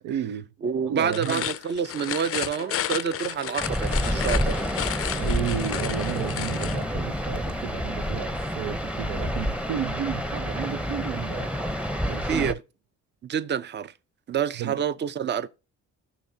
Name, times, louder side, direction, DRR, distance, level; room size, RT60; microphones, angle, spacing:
voice 1, 0.0-0.5 0.8-1.5 5.1-11.6 12.1-12.6 14.6-14.8, right 9 dB, 80° right, 0.6 m, -32 dB
voice 2, 0.6-4.6 12.3-12.6 13.2-13.9 14.3-15.5, right 7 dB, 35° right, 0.6 m, -28 dB
sound 1, 1.0-6.8, left 11 dB, 50° left, 0.5 m, -32 dB
sound 2, 2.5-12.5, right 7 dB, 65° right, 3.2 m, -48 dB
sound 3, 3.6-12.5, equal, 5° right, 0.7 m, -28 dB
17.0 x 6.1 x 2.7 m
cardioid pair, 90°, 30 cm